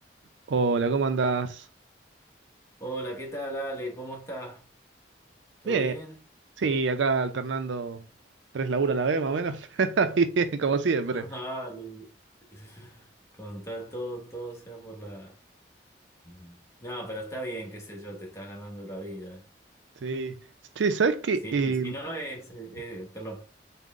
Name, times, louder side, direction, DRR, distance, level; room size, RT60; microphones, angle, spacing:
voice 1, 0.5-1.6 5.7-5.9 6.6-8.0 8.5-11.3 20.0-20.4 20.8-21.9, right 4 dB, 85° right, 0.5 m, -26 dB
voice 2, 2.8-4.7 5.6-6.2 11.1-12.1 12.5-13.1 13.4-15.4 16.2-19.4 21.4-23.4, right 1 dB, 15° left, 0.9 m, -38 dB
3.7 x 2.1 x 3.6 m
head